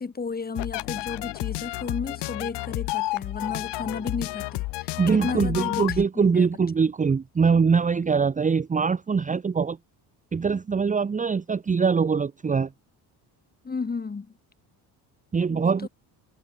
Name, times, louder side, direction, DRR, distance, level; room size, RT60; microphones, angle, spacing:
voice 1, 0.0-6.5 13.6-14.3 15.5-15.9, left 4 dB, 20° left, 3.7 m, -33 dB
sound 1, 0.6-6.1, left 20 dB, 80° left, 1.3 m, -31 dB
voice 2, 5.0-9.8 10.3-12.7 15.3-15.9, right 5 dB, 20° right, 0.9 m, -23 dB
cardioid pair, 125°, 41 cm